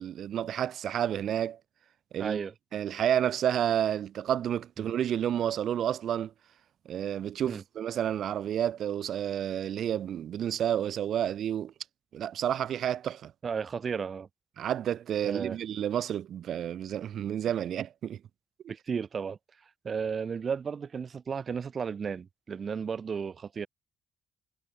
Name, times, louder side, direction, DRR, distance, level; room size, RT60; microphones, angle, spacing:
voice 1, 0.0-1.6 2.1-2.4 2.7-6.3 6.9-11.7 12.1-13.3 14.6-18.2, right 10 dB, 70° right, 2.0 m, -30 dB
voice 2, 2.2-2.5 4.8-4.9 7.5-7.6 13.4-14.3 15.2-15.6 18.7-19.4 19.8-23.7, right 6 dB, 45° right, 2.3 m, -34 dB
cardioid pair, 90°, 0 cm